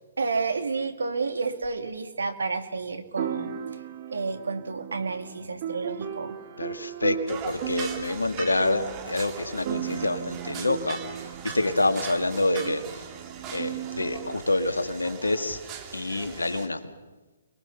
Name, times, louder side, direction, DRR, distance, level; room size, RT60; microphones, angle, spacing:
voice 1, 0.2-3.6 4.1-6.4, right 4 dB, 75° right, 7 dB, 2.5 m, -30 dB
sound 1, 1.6-1.7 3.2-14.4, right 9 dB, 45° right, 1.9 m, -36 dB
voice 2, 6.6-13.1 13.5-15.6 15.9-16.9, left 2 dB, 85° left, 8 dB, 2.1 m, -27 dB
sound 2, 7.3-16.7, right 6 dB, 25° right, 3.0 m, -40 dB
29.0 x 22.0 x 5.8 m, 1.2 s
figure-of-eight pair, 130°, 0 cm